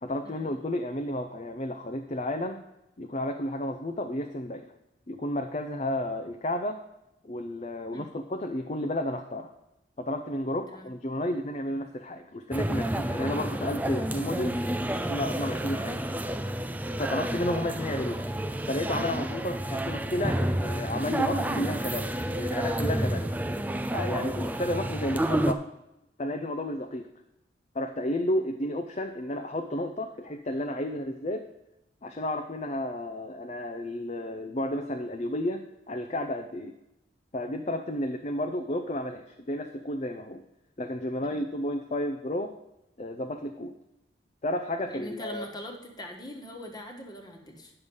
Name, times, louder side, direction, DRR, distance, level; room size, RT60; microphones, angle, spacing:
voice 1, 0.0-2.6 3.0-4.7 5.1-6.8 7.2-9.5 10.0-14.6 15.0-16.0 17.0-18.3 18.7-23.3 23.9-25.7 26.2-27.1 27.7-31.5 32.0-36.7 37.3-40.4 40.8-42.5 43.0-43.7 44.4-45.5, left 1 dB, 40° left, 5 dB, 0.6 m, -32 dB
sound 1, 12.5-25.5, right 1 dB, 10° right, 0.4 m, -30 dB
voice 2, 44.9-47.7, equal, 25° left, 3 dB, 1.3 m, -42 dB
9.7 x 6.8 x 5.4 m, 0.88 s
head